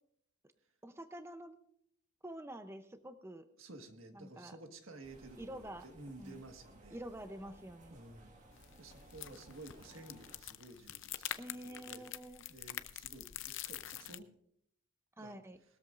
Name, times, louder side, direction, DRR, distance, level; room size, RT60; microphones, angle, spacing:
voice 1, 0.8-1.6 2.2-3.5 4.1-4.6 5.4-5.8 6.2-6.4 6.9-8.0 11.4-12.4 15.2-15.6, right 1 dB, 15° right, 8 dB, 0.6 m, -47 dB
voice 2, 3.6-7.0 7.9-12.1 12.5-14.3 15.2-15.4, right 2 dB, 75° right, 6 dB, 1.6 m, -53 dB
sound 1, 5.0-10.4, right 1 dB, 40° right, 1.8 m, -60 dB
sound 2, 8.5-14.2, left 12 dB, 65° left, 0.6 m, -46 dB
20.0 x 13.5 x 2.5 m, 0.71 s
head